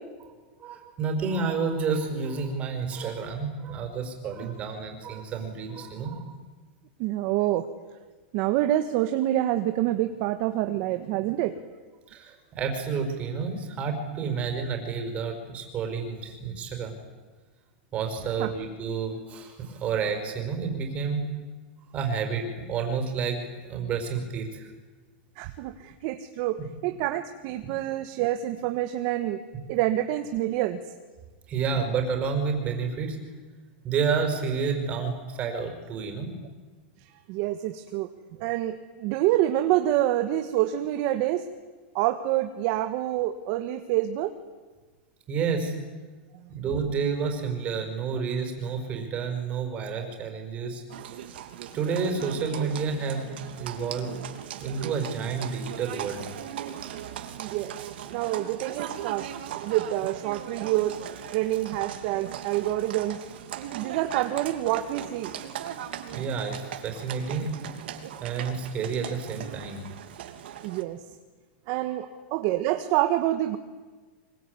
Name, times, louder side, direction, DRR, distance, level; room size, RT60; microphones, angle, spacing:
voice 1, 0.6-6.4 12.1-16.9 17.9-21.3 21.9-24.7 26.6-26.7 27.6-27.7 31.5-33.2 33.8-36.3 45.3-45.8 46.5-50.8 51.7-54.1 54.6-56.2 66.1-67.6 68.2-69.8, right 5 dB, 20° right, 5 dB, 5.2 m, -30 dB
voice 2, 7.0-7.7 8.3-11.6 18.4-18.5 25.4-29.4 29.7-30.8 37.3-38.1 38.4-41.5 41.9-44.4 50.0-50.1 57.4-57.8 58.1-61.0 61.3-63.2 63.7-65.4 70.6-71.0 71.7-73.6, right 14 dB, 40° right, 8 dB, 1.3 m, -27 dB
Livestock farm animals working animals, 50.9-70.8, right 10 dB, 70° right, 2.9 m, -39 dB
25.0 x 23.0 x 9.7 m, 1.4 s
supercardioid pair, 165°, 6 cm